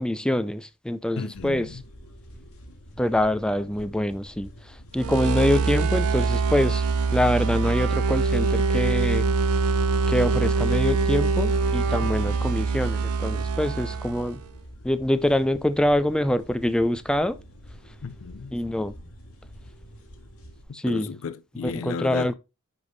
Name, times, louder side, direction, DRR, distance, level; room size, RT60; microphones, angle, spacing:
voice 1, 0.0-1.8 3.0-6.9 7.1-9.3 10.1-14.4 14.8-17.4 18.5-18.9 20.7-21.1 21.6-22.3, left 1 dB, 5° left, 0.4 m, -25 dB
voice 2, 1.2-1.8 12.0-12.6 18.0-18.6 20.7-22.3, left 5 dB, 65° left, 0.4 m, -34 dB
sound 1, 1.3-20.6, equal, 80° left, 2.0 m, -47 dB
sound 2, 5.0-14.5, right 4 dB, 80° right, 0.7 m, -24 dB
9.9 x 3.5 x 3.9 m
head